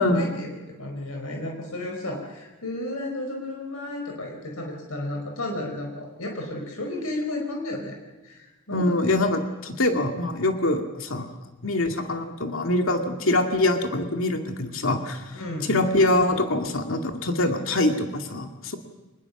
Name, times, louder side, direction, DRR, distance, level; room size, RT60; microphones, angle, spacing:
voice 1, 0.0-7.9 8.2-9.0 15.3-15.7, left 1 dB, 90° left, 1 dB, 4.7 m, -33 dB
voice 2, 8.7-11.3 11.6-15.4 15.7-18.8, left 2 dB, 70° left, 4 dB, 2.3 m, -24 dB
25.0 x 20.5 x 7.2 m, 1.2 s
head